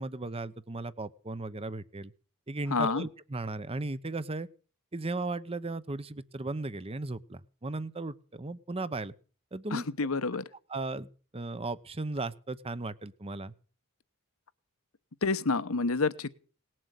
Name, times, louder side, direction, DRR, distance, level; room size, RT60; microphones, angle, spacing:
voice 1, 0.0-2.1 2.5-4.5 4.9-9.1 9.5-9.9 10.7-13.5, right 2 dB, 25° right, 16 dB, 0.8 m, -36 dB
voice 2, 2.7-3.1 9.7-10.4 15.2-16.3, left 4 dB, 70° left, 16 dB, 1.0 m, -28 dB
19.0 x 7.6 x 8.2 m, 0.41 s
head